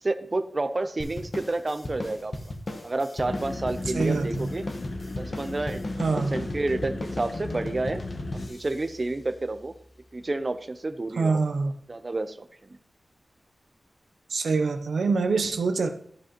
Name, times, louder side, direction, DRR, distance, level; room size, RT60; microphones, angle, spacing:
voice 1, 0.0-2.3 2.8-4.6 5.2-5.8 6.1-8.0 8.5-9.7 10.1-11.4 11.9-12.4, right 2 dB, 35° right, 9 dB, 0.6 m, -30 dB
sound 1, 1.0-9.8, left 1 dB, 45° left, 1.1 m, -37 dB
sound 2, 3.2-8.5, left 2 dB, 65° left, 1.0 m, -36 dB
voice 2, 3.9-4.5 6.0-6.4 11.2-11.7 14.3-15.9, right 4 dB, 90° right, 7 dB, 0.7 m, -25 dB
13.5 x 4.8 x 3.0 m, 0.64 s
wide cardioid pair, 95°, 0 cm